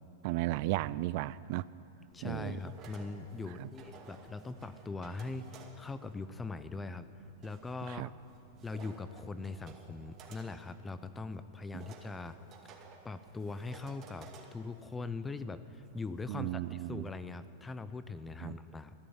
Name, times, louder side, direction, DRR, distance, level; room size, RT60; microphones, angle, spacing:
voice 1, 0.2-1.7 2.2-2.6 3.6-3.7 7.9-8.1 11.7-11.8 16.3-17.1 18.4-18.6, right 17 dB, 55° right, 19 dB, 0.4 m, -35 dB
voice 2, 2.1-7.1 7.4-8.1 8.6-12.4 13.0-18.9, left 3 dB, 10° left, 13 dB, 0.7 m, -41 dB
sound 1, 2.1-17.1, right 5 dB, 35° right, 2.4 m, -56 dB
14.5 x 11.0 x 8.8 m, 2.9 s
hypercardioid pair, 125°, 0 cm